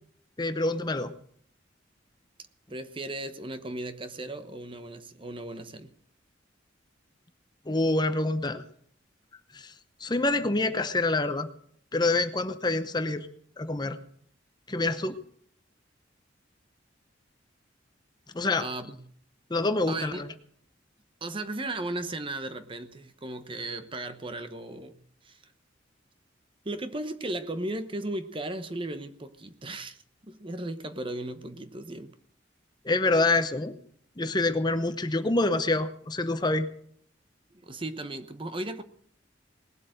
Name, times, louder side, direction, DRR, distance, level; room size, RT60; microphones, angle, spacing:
voice 1, 0.4-1.1 7.7-8.6 9.5-9.7 10.0-11.5 11.9-13.3 13.6-14.0 14.7-15.2 18.3-18.7 19.5-20.3 32.8-33.8 34.2-36.7, left 2 dB, 25° left, 10 dB, 0.8 m, -26 dB
voice 2, 2.7-5.9 18.6-19.0 19.9-20.2 21.2-25.0 25.2-25.5 26.6-32.1 37.5-38.8, right 2 dB, 30° right, 10 dB, 1.0 m, -36 dB
19.5 x 8.2 x 7.8 m, 0.63 s
head